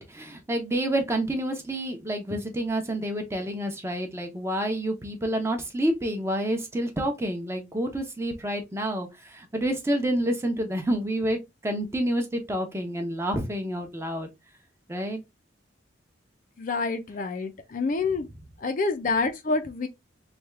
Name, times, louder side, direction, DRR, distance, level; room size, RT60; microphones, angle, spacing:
voice 1, 0.0-14.3 14.9-15.2, right 1 dB, 15° right, 0.7 m, -28 dB
voice 2, 16.6-18.3 18.6-19.9, left 3 dB, 45° left, 0.4 m, -27 dB
3.4 x 2.3 x 3.2 m
head